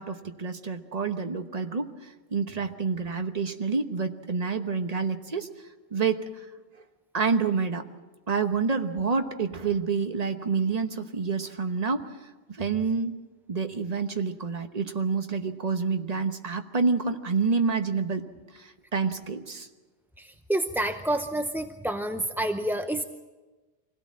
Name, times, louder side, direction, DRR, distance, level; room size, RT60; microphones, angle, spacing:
voice 1, 0.0-1.9 2.3-5.5 5.9-6.2 7.1-7.8 8.3-12.1 12.6-13.2 13.5-18.2 18.6-19.7, right 5 dB, 35° right, 7 dB, 1.2 m, -28 dB
voice 2, 20.2-23.0, right 1 dB, 5° right, 6 dB, 0.4 m, -28 dB
24.5 x 17.0 x 7.4 m, 1.2 s
omnidirectional pair, 1.2 m